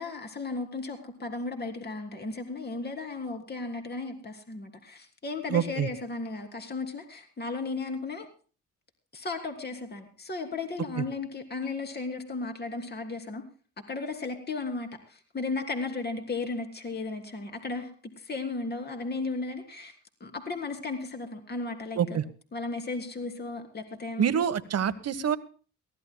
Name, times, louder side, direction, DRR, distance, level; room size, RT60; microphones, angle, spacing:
voice 1, 0.0-8.3 9.1-13.4 13.9-19.9 20.2-22.2 22.5-24.3, left 3 dB, 35° left, 5 dB, 2.9 m, -35 dB
voice 2, 5.5-5.9 21.9-22.2 24.2-25.4, right 8 dB, 55° right, 13 dB, 1.1 m, -26 dB
22.5 x 16.5 x 2.2 m, 0.39 s
cardioid pair, 90°, 30 cm